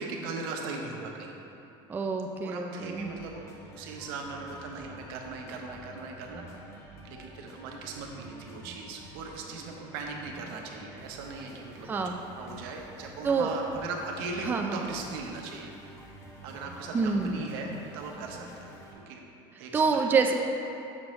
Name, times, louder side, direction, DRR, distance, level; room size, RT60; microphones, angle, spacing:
voice 1, 0.0-1.3 2.4-3.4 3.7-6.5 7.0-11.9 12.3-15.7 16.4-19.2 19.6-20.1, right 4 dB, 90° right, 1 dB, 0.9 m, -39 dB
voice 2, 1.9-3.1 11.9-12.2 13.2-13.5 14.4-14.9 16.9-17.4 19.7-20.3, right 4 dB, 15° right, 3 dB, 0.4 m, -27 dB
sound 1, 3.0-18.9, right 1 dB, 25° left, 1.1 m, -49 dB
7.6 x 6.2 x 3.1 m, 2.9 s
cardioid pair, 145°, 12 cm